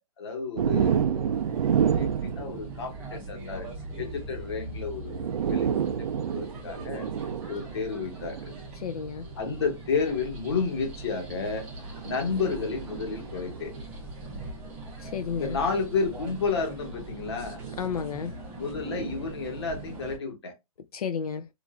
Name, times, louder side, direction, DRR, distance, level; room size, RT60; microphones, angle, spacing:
voice 1, 0.2-1.4 1.9-3.7 4.0-6.1 6.3-7.1 7.5-8.4 9.4-11.7 12.0-13.7 15.3-17.6 18.6-20.5, left 5 dB, 45° left, 1.1 m, -31 dB
sound 1, 0.6-3.3 4.6-4.7 5.0-8.6 9.5-9.7 10.9-13.8 15.3-15.5 17.2-17.9 18.7-20.2, right 8 dB, 65° right, 0.4 m, -30 dB
sound 2, 1.3-20.2, right 2 dB, 10° right, 0.5 m, -41 dB
voice 2, 8.8-9.3 15.0-15.6 17.8-18.4 20.9-21.5, left 7 dB, 75° left, 0.4 m, -32 dB
3.0 x 2.5 x 2.3 m
hypercardioid pair, 165°, 19 cm